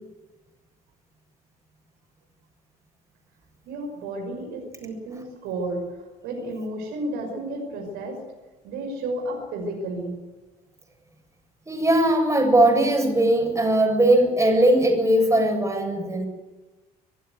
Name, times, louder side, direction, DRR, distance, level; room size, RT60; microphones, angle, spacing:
voice 1, 3.7-5.8 6.2-8.2 8.6-10.1, right 1 dB, 60° right, 1 dB, 6.0 m, -32 dB
voice 2, 11.7-16.3, right 1 dB, 15° right, 2 dB, 7.9 m, -19 dB
25.5 x 15.5 x 8.0 m, 1.1 s
figure-of-eight pair, 55°, 20 cm